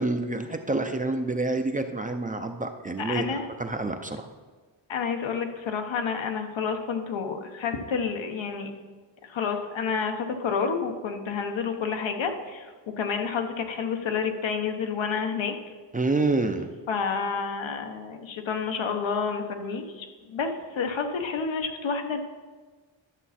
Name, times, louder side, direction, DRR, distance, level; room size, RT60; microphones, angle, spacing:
voice 1, 0.0-4.3 15.9-16.7, right 2 dB, 20° right, 6 dB, 0.5 m, -28 dB
voice 2, 3.0-3.5 4.9-8.7 9.2-12.7 13.0-15.6 16.9-22.2, left 5 dB, 85° left, 5 dB, 1.1 m, -29 dB
11.5 x 6.9 x 4.2 m, 1.4 s
wide cardioid pair, 135°, 45 cm